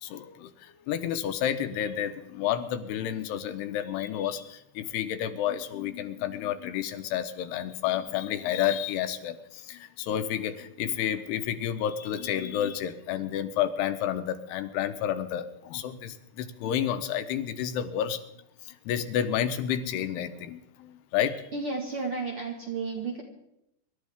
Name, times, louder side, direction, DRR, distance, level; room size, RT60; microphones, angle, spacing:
voice 1, 0.0-18.2 18.6-21.5, left 10 dB, 90° left, 9 dB, 3.0 m, -30 dB
voice 2, 21.5-23.2, right 4 dB, 50° right, 0 dB, 1.8 m, -32 dB
26.0 x 12.5 x 3.6 m, 0.81 s
omnidirectional pair, 4.6 m